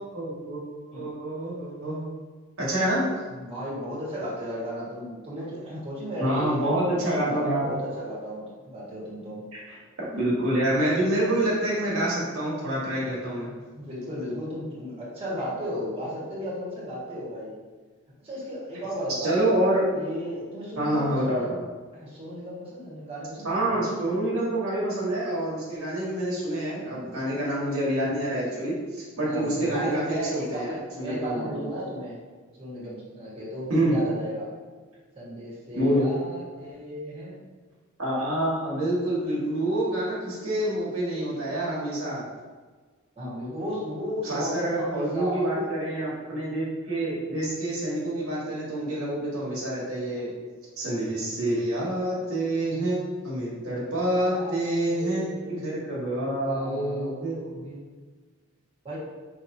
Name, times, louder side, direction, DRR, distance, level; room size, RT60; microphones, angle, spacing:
voice 1, 0.0-2.1 2.6-3.0 6.2-7.7 9.7-13.5 19.2-19.8 20.8-21.6 23.4-31.6 33.7-34.0 35.7-36.1 38.0-42.2 44.2-50.3 50.8-57.4, right 1 dB, 85° right, -6 dB, 1.5 m, -27 dB
voice 2, 3.3-9.4 13.7-17.6 18.2-19.4 19.9-21.5 21.9-23.8 29.2-32.2 32.6-34.5 35.1-37.4 43.2-45.7 46.3-46.4 54.3-55.6 56.0-57.9 58.8-59.0, equal, 25° right, -8 dB, 1.4 m, -35 dB
5.1 x 3.0 x 2.7 m, 1.4 s
head